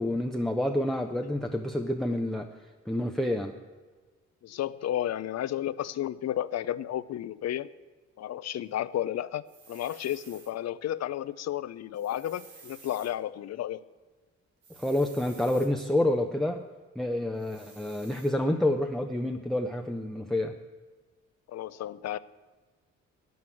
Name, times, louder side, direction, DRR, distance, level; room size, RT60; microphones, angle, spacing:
voice 1, 0.0-2.5 2.9-3.5 14.8-16.6 17.0-20.5, left 1 dB, ahead, 2 dB, 0.8 m, -28 dB
voice 2, 4.4-7.7 8.2-13.8 21.5-22.2, left 11 dB, 60° left, 16 dB, 0.6 m, -32 dB
sound 1, 9.5-10.5 11.9-13.1 14.6-15.7 17.4-18.3, right 5 dB, 80° right, 2.1 m, -53 dB
9.4 x 7.9 x 8.4 m, 1.4 s
cardioid pair, 90°, 30 cm